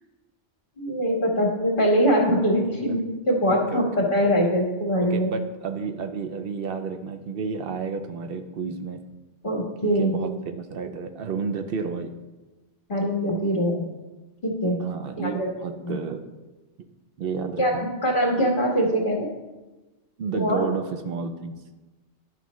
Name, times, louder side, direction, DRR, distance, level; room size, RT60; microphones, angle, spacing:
voice 1, 0.8-5.3 9.4-10.1 12.9-13.9 14.4-14.8 15.2-15.5 15.8-16.0 17.6-19.3 20.3-20.7, equal, 45° left, -1 dB, 1.6 m, -23 dB
voice 2, 3.5-4.3 5.0-9.0 9.8-12.1 14.8-16.2 17.2-17.9 20.2-21.5, right 5 dB, 60° right, 8 dB, 0.7 m, -31 dB
11.5 x 5.6 x 3.0 m, 1.2 s
omnidirectional pair, 1.2 m